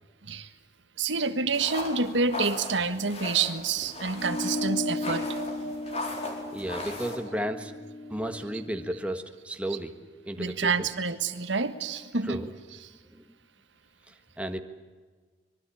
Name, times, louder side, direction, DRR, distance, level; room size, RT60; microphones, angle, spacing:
voice 1, 1.0-5.3 10.4-12.4, right 4 dB, 80° right, 9 dB, 1.6 m, -28 dB
sound 1, 1.5-7.2, left 2 dB, 35° left, 4.4 m, -38 dB
sound 2, 4.1-8.9, left 2 dB, 75° left, 6.1 m, -35 dB
voice 2, 6.5-7.8 8.1-9.9 10.2-10.9 12.2-12.5 13.0-13.2 14.1-14.6, right 1 dB, 5° right, 6 dB, 1.4 m, -33 dB
25.0 x 22.5 x 8.5 m, 1.4 s
head